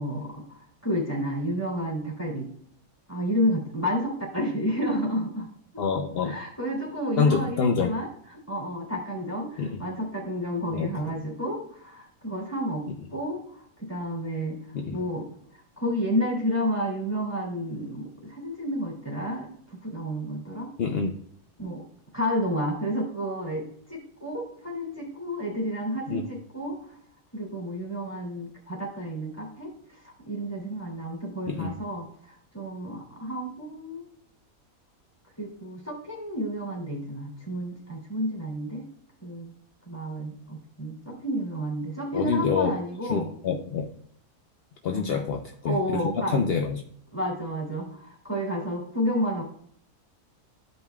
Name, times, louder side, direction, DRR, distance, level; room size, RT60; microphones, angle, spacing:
voice 1, 0.0-2.5 3.1-5.5 6.2-8.1 8.5-12.8 13.1-14.6 14.9-15.2 15.8-20.7 21.6-21.8 22.1-26.9 27.3-30.0 30.2-34.0 35.4-38.9 39.2-39.5 39.8-43.3 44.9-45.2 45.7-46.4 47.1-49.4, equal, 10° left, -4 dB, 2.7 m, -31 dB
voice 2, 5.8-6.4 7.2-8.0 9.6-9.8 10.7-11.0 12.9-13.0 14.7-15.0 20.8-21.2 26.1-26.3 31.5-31.8 42.1-42.8 43.1-43.9 44.8-46.8, left 5 dB, 60° left, 4 dB, 0.7 m, -27 dB
13.0 x 5.3 x 2.3 m, 0.63 s
omnidirectional pair, 1.6 m